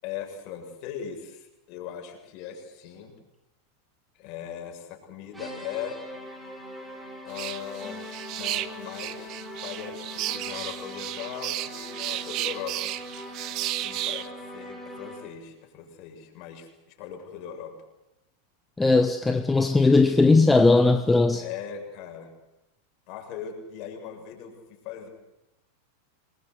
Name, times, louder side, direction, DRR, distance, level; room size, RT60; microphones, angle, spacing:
voice 1, 0.0-3.1 4.1-6.0 7.2-8.0 8.3-12.9 13.7-17.7 21.3-22.3 23.1-25.1, left 8 dB, 40° left, 7.3 m, -39 dB
sound 1, 5.3-15.4, left 1 dB, 5° right, 6.7 m, -41 dB
sound 2, 7.3-14.3, right 16 dB, 40° right, 1.2 m, -33 dB
voice 2, 18.8-21.4, left 3 dB, 10° left, 1.2 m, -19 dB
27.5 x 21.5 x 8.1 m
figure-of-eight pair, 90°, 0 cm